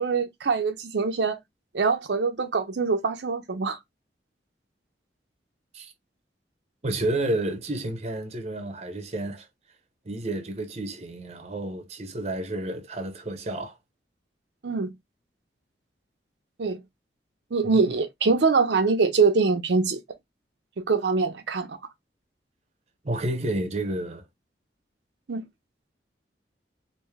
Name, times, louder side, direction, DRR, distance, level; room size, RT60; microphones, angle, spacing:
voice 1, 0.0-1.4 1.7-3.8 14.6-14.9 16.6-16.8 17.5-20.0 20.9-21.8 25.3-25.4, right 4 dB, 75° right, 0.6 m, -23 dB
voice 2, 6.8-9.5 10.1-13.7 17.8-17.9 23.0-24.2, right 1 dB, 35° right, 0.7 m, -30 dB
3.1 x 2.6 x 3.4 m
head